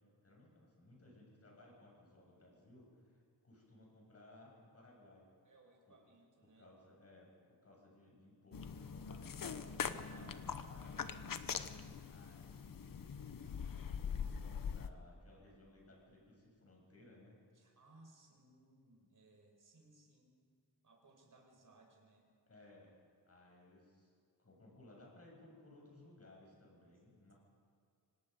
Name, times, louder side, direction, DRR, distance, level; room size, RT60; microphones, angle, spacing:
voice 1, 0.0-3.1 3.4-5.3 5.9-6.0 6.4-11.0 12.1-17.4 22.5-23.0 23.3-24.1 24.4-27.3, left 1 dB, 35° left, -2 dB, 7.4 m, -61 dB
voice 2, 5.4-6.7 9.6-10.4 11.8-12.2 17.5-20.4 20.8-22.3, right 2 dB, 50° right, 1 dB, 5.0 m, -65 dB
sound 1, 8.5-14.9, left 7 dB, 55° left, 1.0 m, -43 dB
26.0 x 18.5 x 5.4 m, 2.3 s
wide cardioid pair, 145°, 40 cm